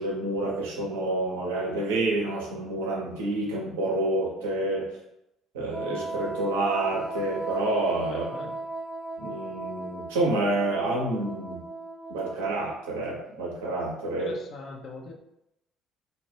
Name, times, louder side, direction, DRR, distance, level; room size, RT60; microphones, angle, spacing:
voice 1, 0.0-4.8 5.5-8.3 9.2-11.6 12.1-14.3, right 2 dB, 70° right, -2 dB, 0.6 m, -28 dB
Wind instrument woodwind instrument, 5.7-13.0, right 2 dB, 20° right, 0.5 m, -37 dB
voice 2, 8.1-8.6 14.2-15.1, left 3 dB, 45° left, 2 dB, 0.4 m, -40 dB
2.1 x 2.1 x 3.1 m, 0.84 s
figure-of-eight pair, 55°, 0 cm